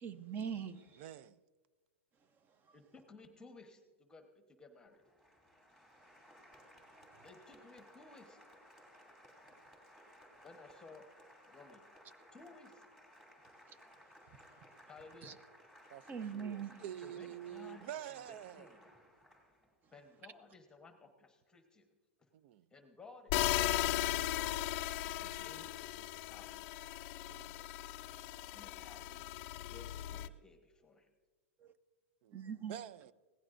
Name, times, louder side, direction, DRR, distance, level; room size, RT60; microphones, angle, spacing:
voice 1, 0.0-1.0 15.2-15.3 16.1-16.8 31.6-31.7 32.3-32.8, right 7 dB, 25° right, 0.8 m, -42 dB
voice 2, 1.0-1.4 15.9-18.8 22.3-22.7 25.0-25.2 27.3-27.6 32.2-32.4 32.7-33.1, right 11 dB, 55° right, 0.5 m, -48 dB
voice 3, 2.7-5.0 7.2-8.4 10.4-11.1 11.4-11.9 12.3-12.8 14.9-15.4 17.0-18.9 19.9-21.9 22.2-22.3 22.7-24.4 25.2-26.7 27.1-27.3 27.6-27.8 28.5-31.1, left 3 dB, 10° left, 1.1 m, -58 dB
Applause, 4.9-19.7, equal, 10° right, 2.7 m, -60 dB
sound 1, 23.3-30.3, left 14 dB, 45° left, 0.6 m, -37 dB
22.5 x 16.5 x 2.6 m
hypercardioid pair, 130°, 7 cm